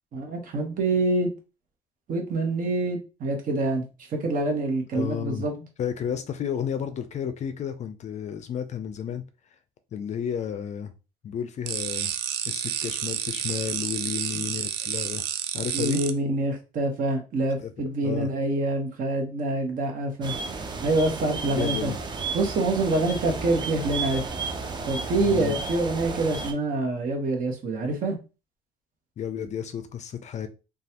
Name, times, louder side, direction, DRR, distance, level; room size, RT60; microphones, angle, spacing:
voice 1, 0.1-1.3 2.1-3.8 4.1-5.5 14.3-14.4 15.7-20.3 20.8-21.9 22.3-24.2 24.8-28.2, right 2 dB, 55° right, 1.0 m, -26 dB
voice 2, 4.9-9.2 9.9-10.9 11.2-12.1 12.5-15.2 15.5-16.0 17.6-17.7 18.0-18.3 21.4-22.0 25.2-25.6 29.2-30.5, left 8 dB, 45° left, 0.4 m, -32 dB
sound 1, 11.7-16.1, right 10 dB, 80° right, 0.4 m, -30 dB
sound 2, 20.2-26.5, right 4 dB, 25° right, 0.5 m, -33 dB
3.1 x 2.3 x 2.8 m
cardioid pair, 110°, 17 cm